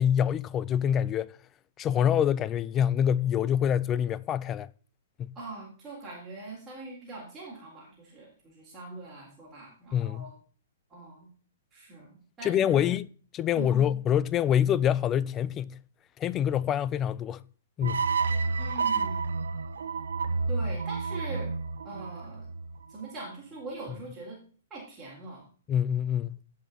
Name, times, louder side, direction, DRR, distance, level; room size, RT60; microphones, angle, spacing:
voice 1, 0.0-1.3 1.8-4.7 5.2-5.3 9.9-10.3 12.4-13.1 13.3-15.8 16.2-17.4 17.8-18.0 25.7-26.4, left 9 dB, 20° left, 0.4 m, -26 dB
voice 2, 5.3-10.3 10.9-11.3 11.7-12.9 13.5-13.8 18.6-19.4 20.5-21.5 21.8-22.5 22.9-24.4 24.7-25.5, right 3 dB, 15° right, 4.2 m, -42 dB
sound 1, 17.8-23.0, right 4 dB, 65° right, 1.0 m, -30 dB
17.0 x 5.7 x 4.1 m
figure-of-eight pair, 115°, 0 cm